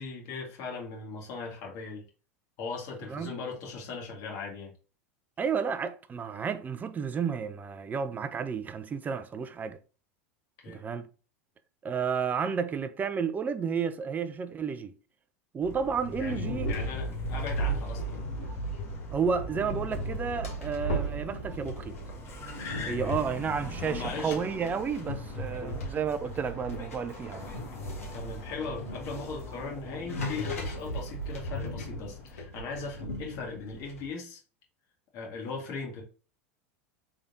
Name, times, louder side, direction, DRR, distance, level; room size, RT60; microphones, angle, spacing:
voice 1, 0.0-2.0 2.6-4.7 10.6-10.9 16.2-18.2 22.8-23.2 23.8-24.4 25.5-25.9 28.1-34.4 35.1-36.0, left 4 dB, 55° left, 1.7 m, -39 dB
voice 2, 5.4-9.8 10.7-11.1 11.8-14.9 15.5-16.7 19.1-22.0 22.9-27.5, right 6 dB, 25° right, 0.4 m, -31 dB
Car, 15.6-32.4, left 4 dB, 40° left, 1.5 m, -43 dB
sound 1, 15.9-34.1, right 1 dB, 85° left, 1.3 m, -37 dB
3.7 x 3.4 x 2.7 m
hypercardioid pair, 90°, 7 cm